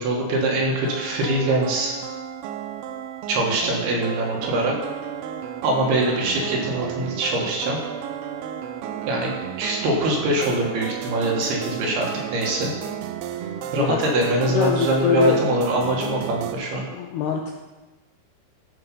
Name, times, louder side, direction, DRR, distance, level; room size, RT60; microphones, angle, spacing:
voice 1, 0.0-1.9 3.3-4.8 5.6-7.8 9.1-9.3 9.6-12.7 13.7-16.8, right 2 dB, 65° right, -1 dB, 3.3 m, -23 dB
sound 1, 0.9-16.6, right 9 dB, 80° right, 2.4 m, -33 dB
voice 2, 13.7-14.1 14.5-15.4 16.9-17.5, left 8 dB, 80° left, 2 dB, 2.4 m, -23 dB
14.5 x 5.8 x 5.4 m, 1.2 s
omnidirectional pair, 5.3 m